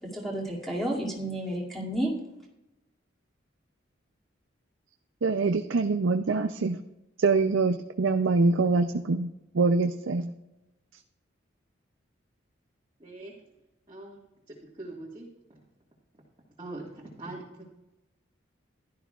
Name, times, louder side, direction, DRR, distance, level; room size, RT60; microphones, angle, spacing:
voice 1, 0.0-2.1, right 1 dB, ahead, -4 dB, 2.5 m, -31 dB
voice 2, 5.2-6.8 7.2-9.3 9.5-10.3, right 3 dB, 80° right, 7 dB, 0.5 m, -24 dB
voice 3, 13.0-13.3 13.9-14.2 14.5-15.6 16.6-17.7, right 2 dB, 25° right, -5 dB, 1.7 m, -42 dB
15.5 x 11.5 x 2.4 m, 0.96 s
head